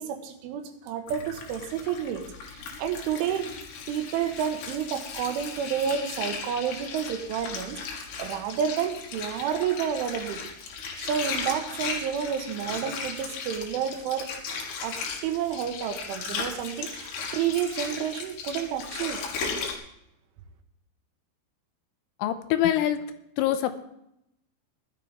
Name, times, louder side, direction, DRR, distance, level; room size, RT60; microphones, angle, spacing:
voice 1, 0.0-3.5 3.9-10.4 11.0-14.3 14.8-19.2, right 8 dB, 75° right, 6 dB, 3.4 m, -30 dB
Water, 1.1-19.8, left 5 dB, 60° left, 3.4 m, -36 dB
voice 2, 22.2-23.1 23.4-23.8, left 12 dB, 85° left, 9 dB, 3.4 m, -24 dB
17.0 x 12.0 x 3.6 m, 0.79 s
omnidirectional pair, 5.9 m